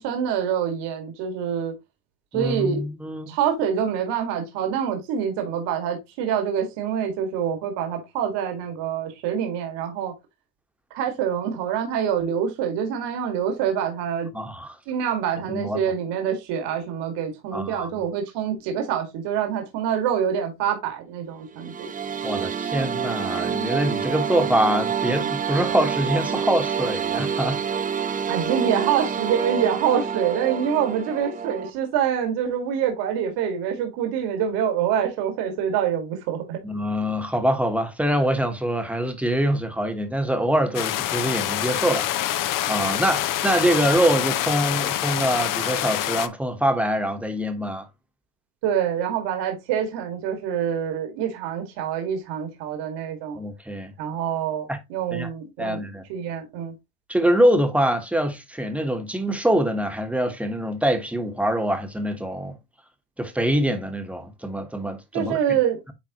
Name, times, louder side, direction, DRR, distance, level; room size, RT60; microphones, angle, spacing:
voice 1, 0.0-1.7 2.3-2.8 3.3-10.1 10.9-14.3 14.9-21.9 28.3-36.6 48.6-53.4 54.0-56.7 65.1-65.8, right 8 dB, 75° right, 2.1 m, -26 dB
voice 2, 2.3-3.3 14.3-14.7 15.5-15.8 17.5-18.0 22.2-27.6 36.6-42.1 42.3-42.4 42.7-47.9 53.4-53.9 54.7-54.8 55.1-55.3 55.6-56.0 57.1-62.6 63.2-65.6, right 1 dB, 5° right, 1.1 m, -24 dB
sound 1, 21.5-31.7, right 7 dB, 20° right, 0.6 m, -27 dB
sound 2, 40.7-46.3, left 13 dB, 50° left, 0.7 m, -26 dB
9.4 x 3.5 x 3.0 m
cardioid pair, 125°, 42 cm